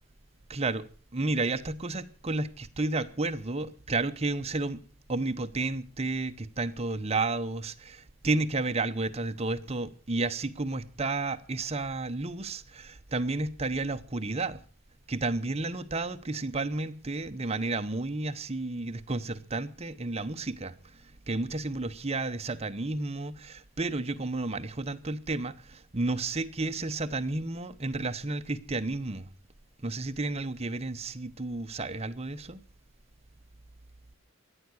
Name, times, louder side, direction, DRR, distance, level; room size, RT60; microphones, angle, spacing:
voice 1, 0.5-0.9 1.1-4.8 5.1-14.6 15.1-29.3 29.8-32.6, right 2 dB, 30° right, 0.9 m, -32 dB
18.0 x 12.0 x 6.3 m
head